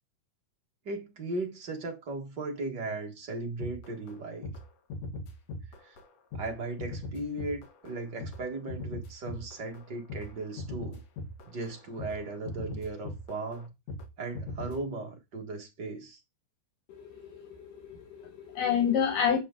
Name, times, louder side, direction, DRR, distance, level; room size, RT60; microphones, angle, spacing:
voice 1, 0.8-4.5 5.8-6.0 6.3-11.0 11.4-13.7 14.2-16.2, right 2 dB, 40° right, 1.6 m, -37 dB
sound 1, 3.6-4.2 4.4-4.6 4.9-6.1 6.3-14.1 14.3-14.8, left 2 dB, 60° left, 2.4 m, -40 dB
voice 2, 16.9-19.4, left 8 dB, 80° left, 3.3 m, -29 dB
8.2 x 8.0 x 3.8 m
omnidirectional pair, 3.8 m